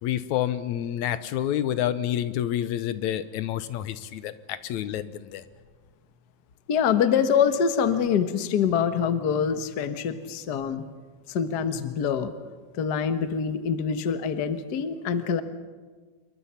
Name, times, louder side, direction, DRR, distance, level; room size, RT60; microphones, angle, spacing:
voice 1, 0.0-5.4, left 11 dB, 80° left, 13 dB, 2.2 m, -28 dB
voice 2, 6.7-10.9 11.3-12.3 12.8-15.4, left 7 dB, 50° left, 9 dB, 1.3 m, -25 dB
27.0 x 23.0 x 5.8 m, 1.4 s
omnidirectional pair, 3.3 m